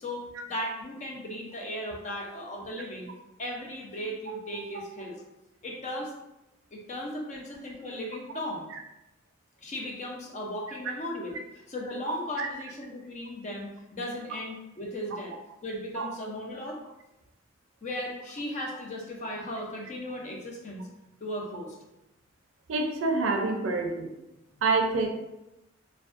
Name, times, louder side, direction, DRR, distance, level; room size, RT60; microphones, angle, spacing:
voice 1, 0.0-3.1 3.4-5.2 5.6-6.1 6.7-8.7 9.6-15.3 15.6-16.8 17.8-20.9 21.2-21.8, left 1 dB, 35° left, 0 dB, 0.4 m, -36 dB
voice 2, 22.7-24.1 24.6-25.1, right 3 dB, 75° right, 3 dB, 0.4 m, -27 dB
2.5 x 2.2 x 2.4 m, 0.94 s
head